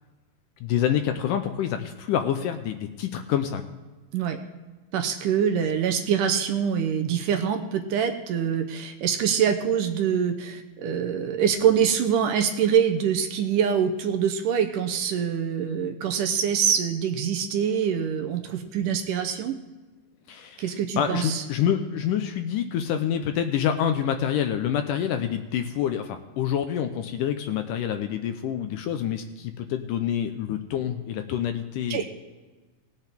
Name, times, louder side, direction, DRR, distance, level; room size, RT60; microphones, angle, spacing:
voice 1, 0.6-3.6 20.3-32.0, left 9 dB, 80° left, 7 dB, 2.0 m, -27 dB
voice 2, 4.9-19.6 20.6-21.4 31.9-32.0, right 8 dB, 75° right, 5 dB, 2.2 m, -24 dB
19.0 x 8.2 x 3.5 m, 1.2 s
omnidirectional pair, 4.2 m